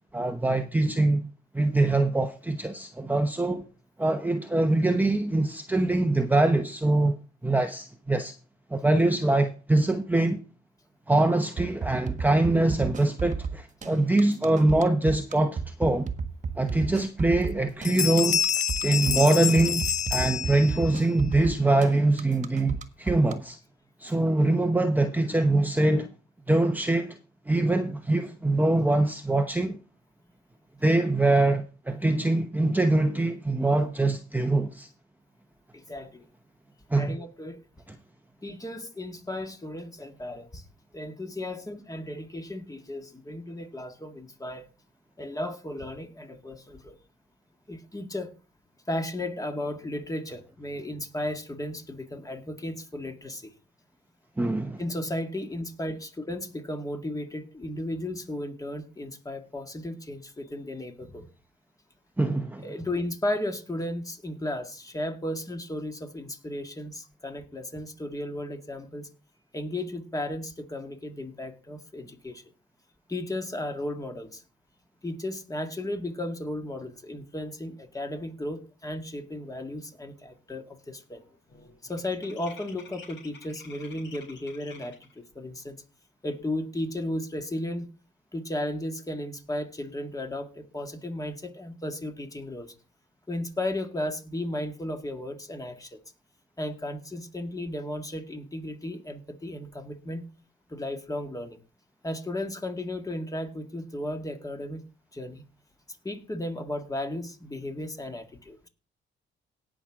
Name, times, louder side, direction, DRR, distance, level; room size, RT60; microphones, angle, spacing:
voice 1, 0.1-1.3 1.5-3.7 4.0-7.2 7.4-8.3 8.7-10.4 11.1-16.1 16.6-18.4 18.8-23.6 24.0-26.1 26.5-27.2 27.5-29.8 30.8-34.9 36.9-37.2 54.4-54.8 62.2-62.7, right 2 dB, 10° right, 0.9 m, -23 dB
sound 1, 11.6-23.3, right 5 dB, 35° right, 1.5 m, -32 dB
Bell, 16.8-16.9 17.3-17.6 17.8-21.0, left 7 dB, 35° left, 0.6 m, -28 dB
voice 2, 35.7-36.2 37.0-37.6 38.4-40.6 40.9-44.7 45.2-47.0 47.7-48.3 48.9-53.5 54.8-61.3 62.6-69.1 69.5-72.4 73.1-74.4 75.0-81.2 81.8-85.8 86.2-87.9 88.3-92.7 93.3-96.0 96.6-100.2 100.7-101.6 102.0-104.8 105.1-105.4 106.0-108.7, left 1 dB, 15° left, 2.0 m, -34 dB
sound 2, 79.9-80.3 80.5-85.2, left 4 dB, 70° left, 4.5 m, -50 dB
18.0 x 6.2 x 3.7 m
cardioid pair, 90°, 20 cm